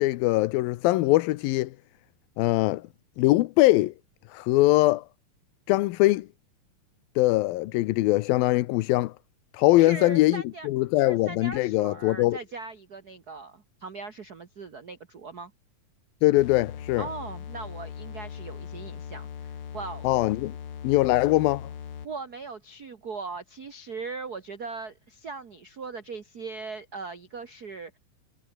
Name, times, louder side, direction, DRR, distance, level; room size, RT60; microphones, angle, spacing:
voice 1, 0.0-1.7 2.4-2.8 3.2-3.9 4.3-5.0 5.7-6.3 7.2-9.1 9.5-12.4 16.2-17.1 20.0-20.5 20.8-21.6, left 18 dB, 85° left, 2.6 m, -22 dB
voice 2, 9.8-10.7 11.0-15.5 17.0-20.1 22.0-28.0, right 4 dB, 55° right, 1.0 m, -39 dB
sound 1, 16.4-22.3, left 8 dB, 45° left, 2.2 m, -40 dB
omnidirectional pair, 4.1 m